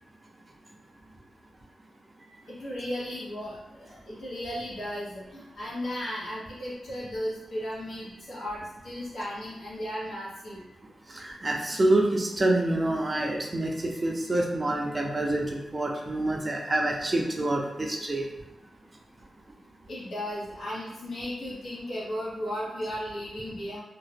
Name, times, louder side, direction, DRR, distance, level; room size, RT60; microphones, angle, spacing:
voice 1, 2.5-10.6 19.9-23.8, equal, 75° left, -7 dB, 1.2 m, -35 dB
voice 2, 11.1-18.3, right 1 dB, 25° right, 0 dB, 0.4 m, -27 dB
2.8 x 2.3 x 3.3 m, 0.95 s
wide cardioid pair, 155°, 0 cm